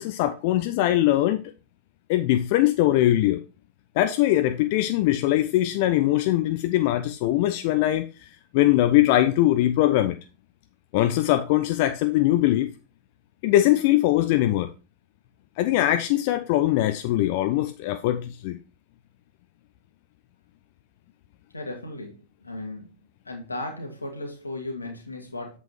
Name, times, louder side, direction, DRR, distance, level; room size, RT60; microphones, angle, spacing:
voice 1, 0.0-1.4 2.1-3.4 4.0-10.2 10.9-12.7 13.4-14.7 15.6-18.6, left 14 dB, 50° left, 0.5 m, -21 dB
voice 2, 21.5-22.9 23.3-25.6, left 2 dB, 80° left, 1.8 m, -36 dB
8.2 x 7.5 x 3.1 m
figure-of-eight pair, 90°, 0 cm